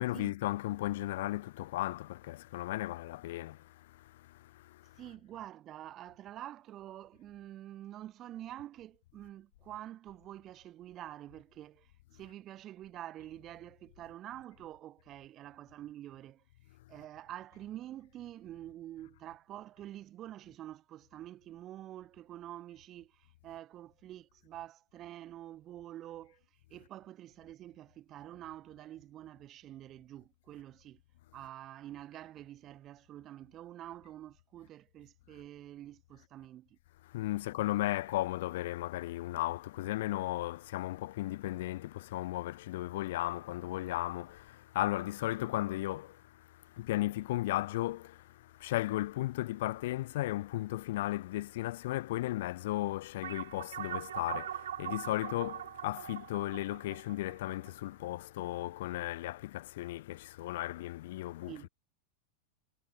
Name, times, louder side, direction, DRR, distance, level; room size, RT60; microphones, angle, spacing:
voice 1, 0.0-5.1 37.0-61.7, left 16 dB, 55° left, 0.5 m, -35 dB
voice 2, 5.0-16.4 16.9-26.4 26.7-31.0 31.3-36.8 61.5-61.7, right 13 dB, 30° right, 1.1 m, -47 dB
sound 1, 53.2-58.1, right 11 dB, 60° right, 0.9 m, -41 dB
figure-of-eight pair, 90°, 0 cm